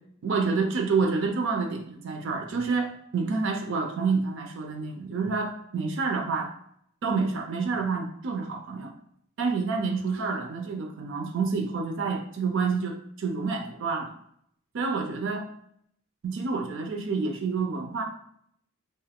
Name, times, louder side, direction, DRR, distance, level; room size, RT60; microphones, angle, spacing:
voice 1, 0.2-6.5 7.0-8.9 9.4-14.1 14.7-15.5 16.2-18.0, right 4 dB, 55° right, 3 dB, 0.4 m, -28 dB
2.6 x 2.3 x 3.4 m, 0.68 s
head